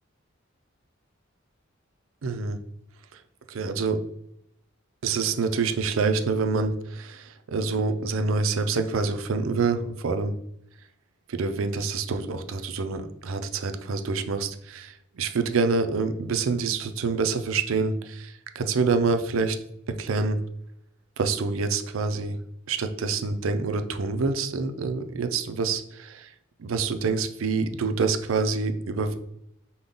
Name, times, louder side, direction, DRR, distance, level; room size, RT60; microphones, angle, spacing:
voice 1, 2.2-2.6 3.5-4.0 5.0-7.2 7.5-10.3 11.3-14.9 15.2-18.3 18.6-19.6 20.0-20.4 21.2-22.4 22.7-26.1 26.6-29.2, right 4 dB, 75° right, 8 dB, 0.5 m, -26 dB
5.2 x 2.2 x 3.8 m, 0.77 s
head